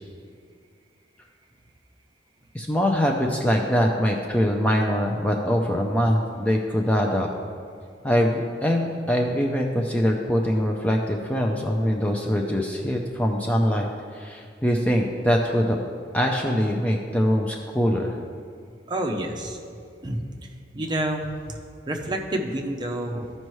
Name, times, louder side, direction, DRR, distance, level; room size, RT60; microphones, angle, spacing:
voice 1, 2.5-7.3 8.0-15.8 16.1-18.2, equal, 5° left, 0 dB, 0.4 m, -23 dB
voice 2, 18.9-19.6 20.0-20.2 20.7-21.6 21.9-23.3, right 1 dB, 25° right, 2 dB, 0.7 m, -28 dB
14.5 x 5.4 x 3.1 m, 2.3 s
head